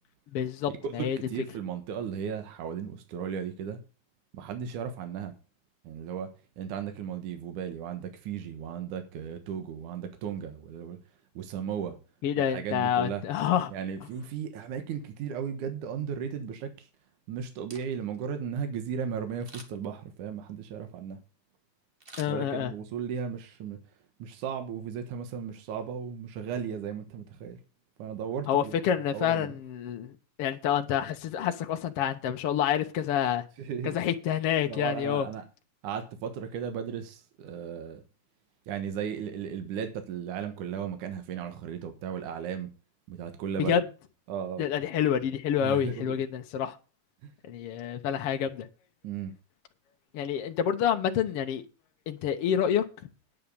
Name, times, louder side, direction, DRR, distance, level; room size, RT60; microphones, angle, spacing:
voice 1, 0.3-1.2 12.2-13.7 22.2-22.7 28.5-33.4 33.8-35.2 43.7-43.8 44.6-46.8 47.4-48.7 50.1-51.6 52.1-52.8, left 9 dB, 65° left, 1.6 m, -28 dB
voice 2, 1.0-3.8 4.3-5.3 5.8-6.3 6.6-11.0 11.3-12.0 12.3-13.2 13.7-16.9 17.3-21.2 22.3-23.8 24.2-27.6 28.0-28.8 29.1-29.6 33.6-34.0 34.7-35.4 35.8-38.0 38.7-42.7 43.1-43.8 44.3-44.6 45.6-46.2 47.2-47.3 49.0-49.3, right 7 dB, 80° right, 2.8 m, -35 dB
Camera, 17.5-18.3 19.4-20.0 22.0-22.9 23.4-23.5, right 2 dB, 30° right, 1.1 m, -49 dB
10.0 x 7.1 x 6.8 m
omnidirectional pair, 3.6 m